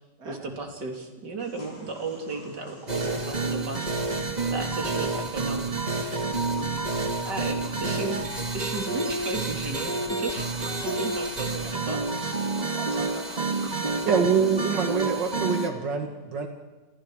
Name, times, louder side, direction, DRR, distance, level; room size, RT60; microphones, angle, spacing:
voice 1, 0.3-4.0 4.5-5.6 7.2-8.3 8.5-12.0, right 3 dB, 70° right, 2 dB, 3.8 m, -34 dB
sound 1, 1.4-14.7, equal, 45° left, 8.2 m, -47 dB
sound 2, 2.9-15.7, right 3 dB, 25° right, 1.9 m, -29 dB
voice 2, 12.4-13.7, right 3 dB, 55° right, 2 dB, 3.1 m, -44 dB
voice 3, 14.1-16.5, right 6 dB, 85° right, 3 dB, 2.6 m, -25 dB
28.0 x 28.0 x 5.0 m, 1.2 s
omnidirectional pair, 1.9 m